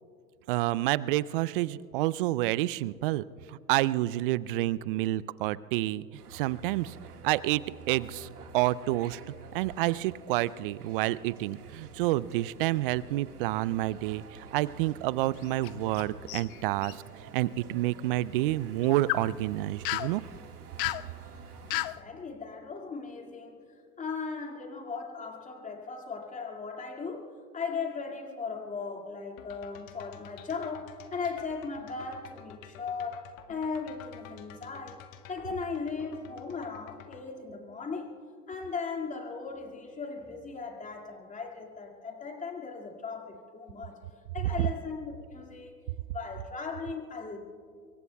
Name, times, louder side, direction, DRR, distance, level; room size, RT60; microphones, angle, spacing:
voice 1, 0.5-3.2 3.7-6.1 6.3-6.9 7.2-8.3 8.5-9.2 9.5-14.2 14.5-17.0 17.3-20.2, right 16 dB, 40° right, 20 dB, 0.4 m, -28 dB
sound 1, 6.2-21.9, right 6 dB, 80° right, 1.8 m, -49 dB
sound 2, 15.4-16.0 16.3-16.9 18.8-19.3 19.9-20.1 20.8-21.1 21.7-22.0, left 17 dB, 40° left, 0.4 m, -32 dB
voice 2, 21.7-23.6 24.0-38.1 38.5-44.0 44.3-45.7 46.1-47.4, left 4 dB, 15° left, 2 dB, 2.2 m, -37 dB
sound 3, 29.4-37.3, left 8 dB, 60° left, 1.4 m, -51 dB
26.5 x 23.5 x 2.3 m, 2.3 s
hypercardioid pair, 100°, 46 cm